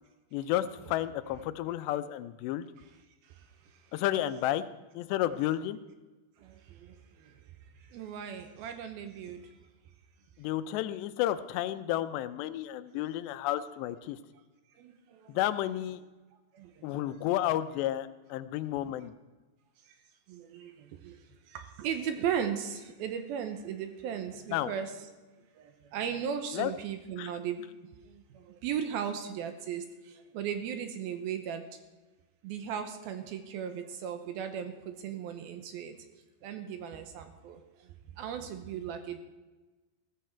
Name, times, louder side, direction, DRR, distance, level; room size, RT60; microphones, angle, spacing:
voice 1, 0.3-2.7 3.9-4.6 4.9-5.8 10.4-14.2 15.3-16.0 16.8-19.1 24.5-24.7 26.5-26.7 27.2-27.3, left 13 dB, 85° left, 13 dB, 2.9 m, -31 dB
voice 2, 3.2-4.0 6.4-9.6 12.9-13.0 14.8-15.4 16.5-17.2 19.8-20.0 20.3-25.1 25.5-27.7 28.0-31.6 32.4-36.0 36.4-39.2, right 8 dB, 75° right, 7 dB, 2.5 m, -37 dB
15.5 x 14.5 x 4.5 m, 1.2 s
omnidirectional pair, 4.9 m